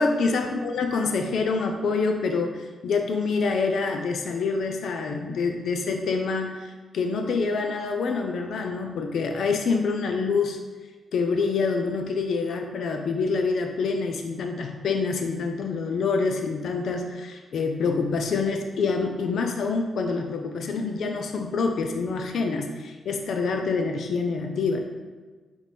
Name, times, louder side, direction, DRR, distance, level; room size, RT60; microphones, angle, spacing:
voice 1, 0.0-10.6 11.1-24.8, left 4 dB, 70° left, 4 dB, 0.6 m, -26 dB
5.1 x 4.8 x 4.2 m, 1.4 s
cardioid pair, 95°, 0 cm